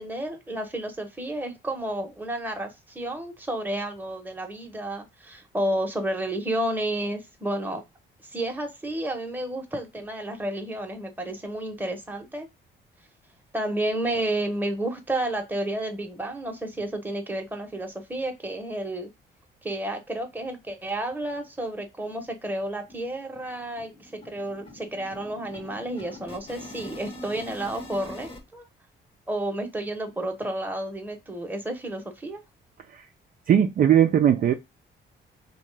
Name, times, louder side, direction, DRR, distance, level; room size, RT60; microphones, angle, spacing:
voice 1, 0.0-7.8 8.2-12.5 13.5-19.1 19.6-28.6 29.3-32.4, right 1 dB, 10° right, 0.8 m, -31 dB
sound 1, 21.1-21.2 21.6-21.7 22.0-22.2 22.4-28.4, left 1 dB, 25° left, 0.8 m, -44 dB
voice 2, 33.5-34.5, right 9 dB, 45° right, 0.4 m, -19 dB
2.7 x 2.2 x 3.2 m
cardioid pair, 90°, 20 cm